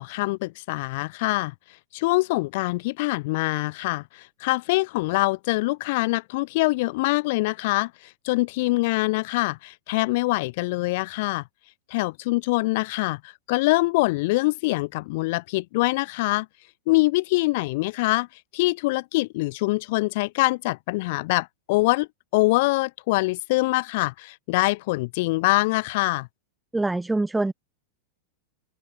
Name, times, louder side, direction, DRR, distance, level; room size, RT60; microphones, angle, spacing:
voice 1, 0.0-1.5 1.9-11.4 11.9-16.5 16.9-18.3 18.5-22.1 22.3-26.3, left 22 dB, 50° left, 0.6 m, -24 dB
voice 2, 26.7-27.5, right 2 dB, 5° right, 1.4 m, -24 dB
open air
figure-of-eight pair, 90°, 0 cm